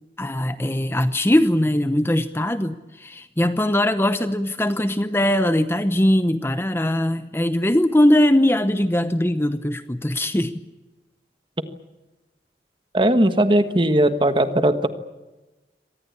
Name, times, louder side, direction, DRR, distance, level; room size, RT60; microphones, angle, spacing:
voice 1, 0.2-10.6, left 1 dB, 15° left, 11 dB, 0.8 m, -20 dB
voice 2, 12.9-14.9, right 1 dB, 30° right, 10 dB, 1.4 m, -18 dB
25.5 x 19.0 x 8.5 m, 1.1 s
head